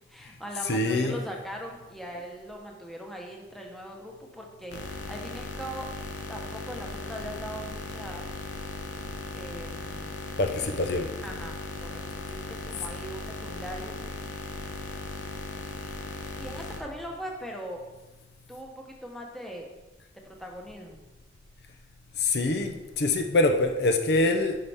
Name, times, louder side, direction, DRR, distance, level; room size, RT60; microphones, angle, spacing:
voice 1, 0.1-5.9 6.3-8.2 9.3-10.3 11.2-13.9 16.4-17.8 18.5-19.7 20.2-21.0, equal, ahead, 0 dB, 1.0 m, -40 dB
voice 2, 0.7-1.1 10.4-11.1 22.2-24.6, left 2 dB, 60° left, 5 dB, 0.6 m, -24 dB
sound 1, 4.7-16.8, left 2 dB, 85° left, 1.0 m, -37 dB
9.4 x 5.6 x 3.5 m, 1.1 s
head